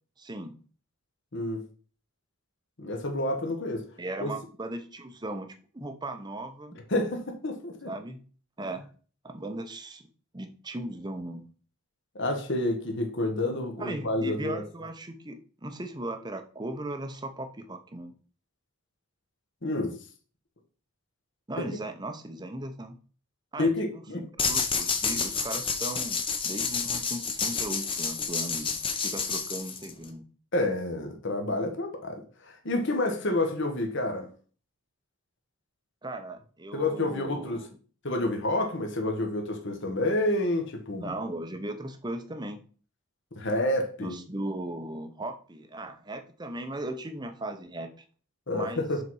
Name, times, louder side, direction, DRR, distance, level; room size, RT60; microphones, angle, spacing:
voice 1, 0.2-0.5 4.0-6.8 7.8-8.2 8.6-8.8 9.2-10.1 10.3-11.4 13.8-18.1 21.5-23.0 23.5-30.2 36.0-37.7 41.0-42.6 44.0-47.9 48.5-48.8, right 1 dB, 20° right, 0.7 m, -37 dB
voice 2, 1.3-1.6 2.8-3.8 4.2-4.3 6.9-7.9 12.1-14.6 19.6-20.0 21.6-21.7 23.6-24.3 30.5-34.3 36.7-37.7 38.0-41.1 43.4-44.2 48.5-49.0, left 2 dB, 55° left, 1.3 m, -29 dB
sound 1, 24.4-30.1, left 5 dB, 25° left, 0.8 m, -29 dB
6.8 x 4.2 x 4.7 m
head